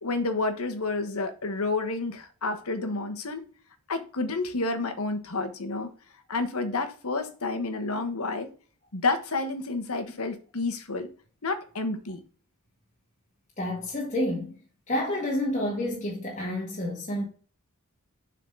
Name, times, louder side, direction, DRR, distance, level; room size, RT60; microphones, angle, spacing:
voice 1, 0.0-3.4 3.9-5.9 6.3-8.5 8.9-11.1 11.4-12.2, left 3 dB, 75° left, 1.3 m, -30 dB
voice 2, 13.6-14.5 14.9-17.2, left 1 dB, 35° left, 1.7 m, -29 dB
7.2 x 4.2 x 5.4 m
head